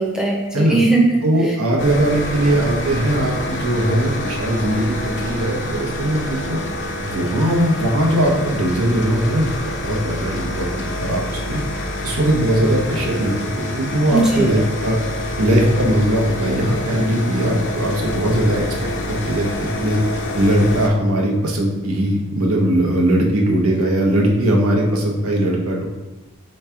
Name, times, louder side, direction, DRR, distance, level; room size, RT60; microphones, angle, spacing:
voice 1, 0.0-1.6 14.1-14.6, right 2 dB, 5° right, -2 dB, 0.6 m, -19 dB
voice 2, 1.2-6.6 7.0-11.6 12.0-15.0 15.4-18.6 19.1-20.0 20.3-25.9, right 1 dB, 85° right, 0 dB, 0.8 m, -19 dB
sound 1, 1.8-20.9, left 1 dB, 55° left, 0.5 m, -27 dB
3.5 x 3.1 x 4.5 m, 1.1 s
head